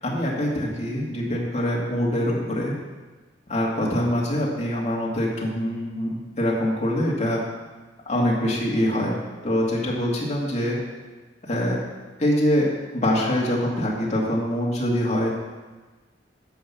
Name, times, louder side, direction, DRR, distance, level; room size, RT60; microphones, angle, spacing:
voice 1, 0.0-2.7 3.5-7.4 8.1-9.2 9.4-10.8 11.5-11.8 12.2-12.7 12.9-15.3, equal, 40° left, -3 dB, 2.3 m, -24 dB
10.5 x 5.4 x 7.3 m, 1.3 s
head